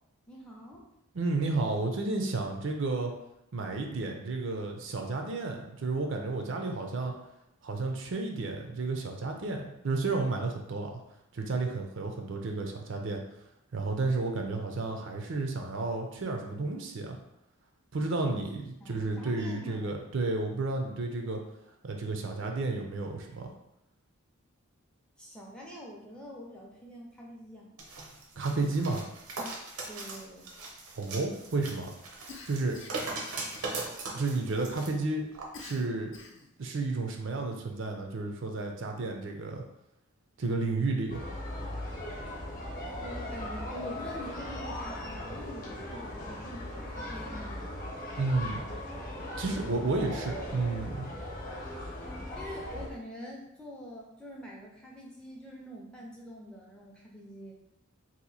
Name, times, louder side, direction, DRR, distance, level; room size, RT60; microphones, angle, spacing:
voice 1, 0.3-0.9 18.8-20.0 25.2-27.7 29.9-30.5 43.0-47.6 49.5-49.8 52.4-57.5, equal, 5° left, -3 dB, 0.5 m, -45 dB
voice 2, 1.1-3.1 3.5-7.1 7.6-11.0 11.3-13.2 13.7-17.2 17.9-21.4 21.8-23.5 28.4-29.1 31.0-31.9 32.4-32.7 34.1-35.2 35.6-36.1 36.6-39.6 40.4-41.2 48.1-48.6 49.4-51.1, right 3 dB, 55° right, 3 dB, 0.5 m, -32 dB
sound 1, 27.8-34.9 35.3-35.5, right 3 dB, 80° right, 0.8 m, -39 dB
Cough, 32.3-33.1 33.5-34.2 35.5-36.5, left 4 dB, 55° left, 0.5 m, -48 dB
sound 2, 41.1-52.9, left 1 dB, 35° left, 0.8 m, -38 dB
2.8 x 2.6 x 4.0 m, 0.83 s
head